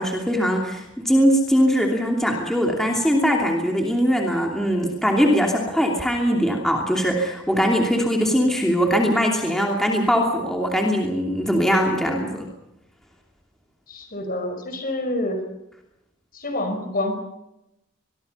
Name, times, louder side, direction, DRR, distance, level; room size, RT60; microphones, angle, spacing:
voice 1, 0.0-12.5, equal, ahead, 0 dB, 2.8 m, -21 dB
voice 2, 13.9-15.4 16.3-17.1, left 1 dB, 45° left, 7 dB, 5.1 m, -27 dB
25.0 x 22.5 x 5.6 m, 0.87 s
head